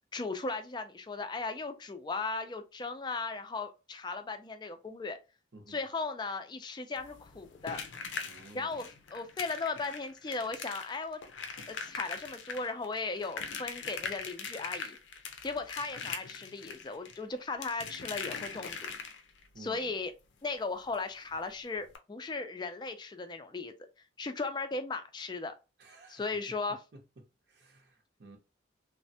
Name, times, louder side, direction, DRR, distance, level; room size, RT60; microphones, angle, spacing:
voice 1, 0.1-5.2 5.7-7.8 8.5-11.2 11.7-15.0 15.4-19.0 19.6-20.1 20.4-23.7 24.2-25.5 26.1-26.8, left 3 dB, 25° left, 0.3 m, -37 dB
sound 1, 7.0-19.5 20.9-21.0 21.3-21.4 21.9-22.0, left 5 dB, 85° left, 0.5 m, -42 dB
voice 2, 8.2-8.9 19.5-20.0 25.8-26.6 26.9-28.4, right 2 dB, 65° right, 0.7 m, -54 dB
3.1 x 2.1 x 2.7 m
head